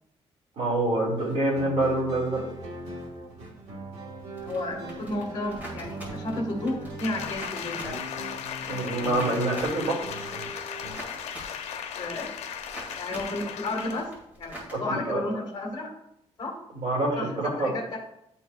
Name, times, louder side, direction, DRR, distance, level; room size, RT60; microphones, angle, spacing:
voice 1, 0.6-2.4 8.7-10.0 14.7-15.2 16.7-17.7, right 2 dB, 65° right, -2 dB, 2.3 m, -26 dB
sound 1, 1.1-11.0, right 2 dB, 85° right, 1.5 m, -40 dB
voice 2, 4.4-8.0 12.0-12.4 13.0-14.1 14.4-15.9 16.4-16.5 17.2-17.3 17.6-18.1, left 2 dB, 40° left, 0 dB, 1.6 m, -32 dB
sound 2, 4.4-14.7, equal, 15° right, 2.2 m, -45 dB
Applause, 7.0-14.1 14.5-14.7, left 8 dB, 90° left, 0.6 m, -37 dB
10.5 x 4.6 x 2.4 m, 0.80 s
cardioid pair, 180°, 11 cm